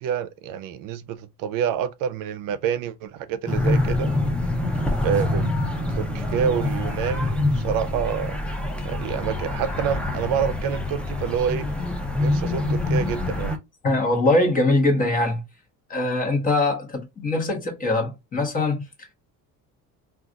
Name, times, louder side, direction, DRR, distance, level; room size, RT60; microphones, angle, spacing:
voice 1, 0.0-4.1 5.0-5.5 6.0-8.4 8.8-11.6 12.2-13.5, right 8 dB, 70° right, 0.5 m, -27 dB
sound 1, 3.5-13.6, left 2 dB, 5° left, 0.4 m, -25 dB
voice 2, 13.8-15.4 15.9-18.8, left 2 dB, 25° left, 1.0 m, -22 dB
2.4 x 2.3 x 3.8 m
cardioid pair, 160°, 34 cm